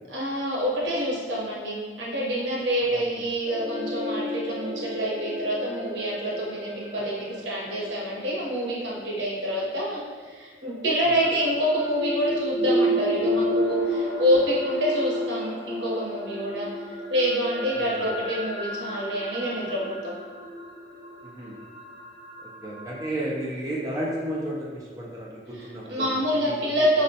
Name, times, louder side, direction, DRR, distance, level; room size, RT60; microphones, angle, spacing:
voice 1, 0.1-16.7 17.1-20.1 25.5-27.0, equal, 75° right, -4 dB, 0.8 m, -27 dB
sound 1, 3.5-9.5 10.6-23.1, equal, 65° left, 0.7 m, -31 dB
voice 2, 17.7-18.1 21.4-21.6 22.6-26.1 26.4-26.9, right 1 dB, 20° right, -5 dB, 0.4 m, -33 dB
4.2 x 2.1 x 2.6 m, 1.5 s
head